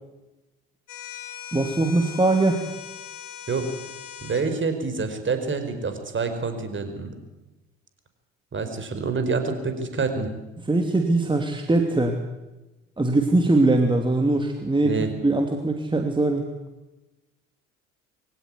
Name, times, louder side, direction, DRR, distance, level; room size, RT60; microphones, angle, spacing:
sound 1, 0.9-4.5, left 11 dB, 60° left, 3.9 m, -40 dB
voice 1, 1.5-2.6 10.7-12.2 13.0-16.4, right 2 dB, 15° right, 4 dB, 2.7 m, -21 dB
voice 2, 4.2-7.1 8.5-10.3 14.8-15.1, right 4 dB, 30° right, 8 dB, 4.9 m, -27 dB
23.0 x 17.5 x 9.9 m, 1.0 s
hypercardioid pair, 60°, 37 cm